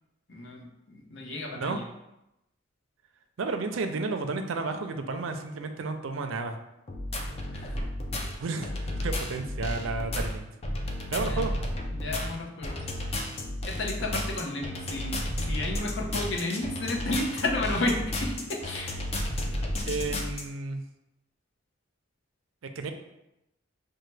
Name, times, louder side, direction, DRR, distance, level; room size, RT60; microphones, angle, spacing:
voice 1, 0.3-1.8 7.2-7.8 11.1-11.5 11.9-12.8 13.7-15.1 15.4-19.0, left 2 dB, 65° left, -1 dB, 0.7 m, -32 dB
voice 2, 3.4-6.6 8.4-10.5 11.1-11.5 19.9-20.8 22.8-22.9, right 3 dB, 80° right, 6 dB, 0.5 m, -32 dB
sound 1, 6.9-20.4, left 1 dB, 30° left, 0.4 m, -32 dB
5.5 x 2.2 x 3.2 m, 0.89 s
head